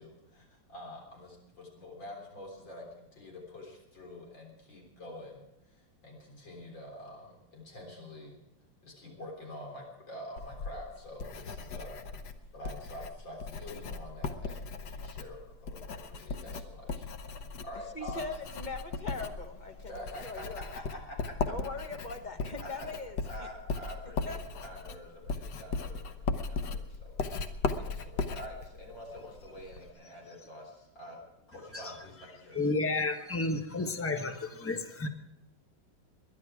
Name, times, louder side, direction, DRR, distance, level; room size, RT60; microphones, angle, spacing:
voice 1, 0.0-8.4 8.8-12.0 12.5-18.3 19.9-21.5 22.2-22.3 22.6-22.9 23.2-24.4 24.6-31.2 31.5-32.6, left 1 dB, 85° left, -1 dB, 4.5 m, -47 dB
Writing, 10.4-29.9, left 4 dB, 65° left, 1.5 m, -38 dB
voice 2, 17.9-20.8 21.5-23.5 24.2-24.4, left 3 dB, 25° left, 5 dB, 1.3 m, -41 dB
voice 3, 32.5-35.1, left 3 dB, 10° left, 6 dB, 0.9 m, -31 dB
21.5 x 11.0 x 4.8 m, 0.90 s
omnidirectional pair, 2.0 m